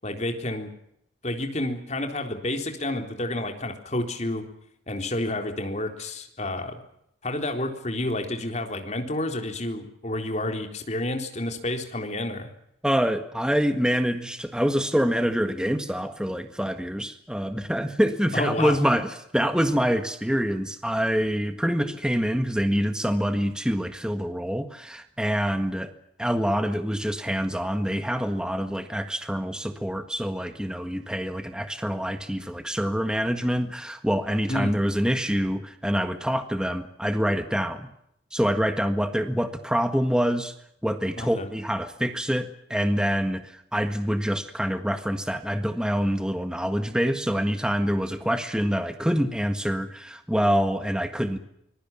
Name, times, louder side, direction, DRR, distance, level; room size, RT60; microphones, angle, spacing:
voice 1, 0.0-0.7 1.2-4.4 4.9-6.8 7.2-12.5 18.3-18.8 34.5-34.8 41.2-41.5, left 1 dB, 35° left, 5 dB, 3.8 m, -30 dB
voice 2, 12.8-25.9 26.2-37.9 38.3-40.5 40.8-51.4, equal, 5° right, 8 dB, 1.6 m, -26 dB
25.5 x 22.0 x 7.4 m, 0.74 s
head